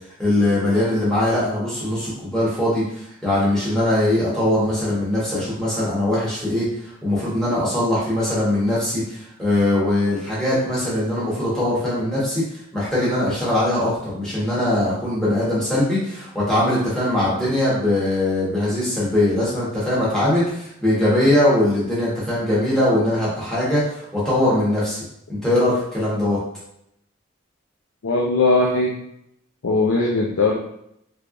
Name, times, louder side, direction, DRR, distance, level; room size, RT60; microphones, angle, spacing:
voice 1, 0.2-6.6 7.0-12.4 12.7-25.0 25.4-26.4, left 1 dB, 5° left, -9 dB, 1.3 m, -21 dB
voice 2, 28.0-29.0 29.6-30.5, left 3 dB, 90° left, -2 dB, 0.5 m, -19 dB
3.4 x 3.3 x 2.5 m, 0.75 s
head